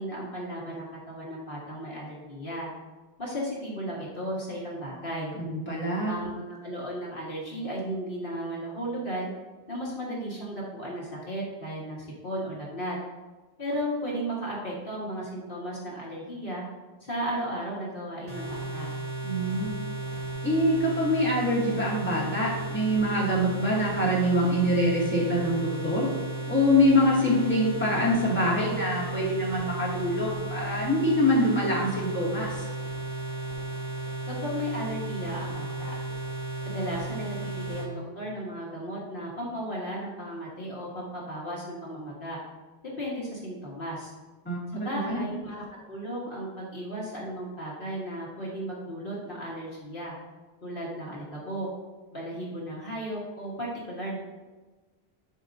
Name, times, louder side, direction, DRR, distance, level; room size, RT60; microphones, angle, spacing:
voice 1, 0.0-2.7 3.2-5.3 6.1-6.3 6.6-9.3 9.7-13.0 13.6-16.6 17.0-18.9 34.3-35.9 36.6-42.4 43.0-44.1 44.7-50.1 50.6-51.7 52.1-54.2, equal, 60° left, -5 dB, 1.7 m, -35 dB
voice 2, 5.5-6.2 19.2-19.7 20.4-26.1 26.5-32.7 44.5-45.3, left 1 dB, 10° left, -7 dB, 2.2 m, -25 dB
sound 1, 18.3-37.9, right 2 dB, 35° left, 2.2 m, -34 dB
11.0 x 5.0 x 2.6 m, 1.3 s
omnidirectional pair, 1.1 m